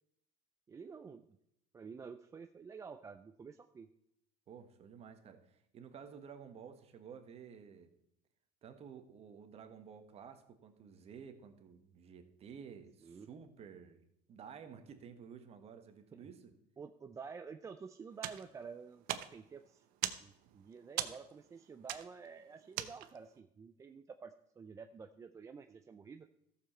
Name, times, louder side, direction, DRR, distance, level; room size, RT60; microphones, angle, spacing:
voice 1, 0.7-1.4 1.7-3.9 13.0-13.3 16.1-16.2 16.8-19.9 20.2-26.3, right 5 dB, 15° right, 7 dB, 0.4 m, -50 dB
voice 2, 4.5-7.9 8.6-16.5, right 7 dB, 35° right, 7 dB, 1.4 m, -53 dB
sound 1, 18.1-23.4, right 13 dB, 55° right, 0.8 m, -42 dB
13.5 x 7.2 x 4.3 m, 0.78 s
supercardioid pair, 125°, 18 cm